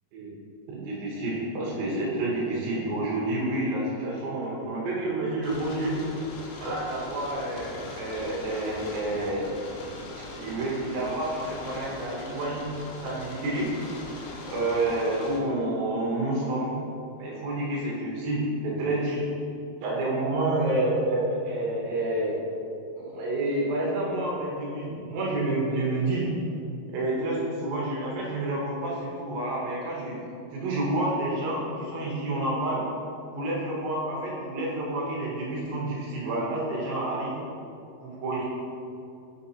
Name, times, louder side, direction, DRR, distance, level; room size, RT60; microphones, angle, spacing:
voice 1, 0.7-5.9 6.6-9.5 10.3-12.7 13.0-13.7 14.5-16.8 17.2-19.2 19.8-22.4 23.0-26.3 26.9-30.2 30.5-32.8 33.3-37.3 38.0-38.5, right 1 dB, 70° right, -4 dB, 2.7 m, -29 dB
sound 1, 5.4-15.4, left 2 dB, 90° left, 2.8 m, -41 dB
6.4 x 6.2 x 2.8 m, 2.5 s
omnidirectional pair, 4.6 m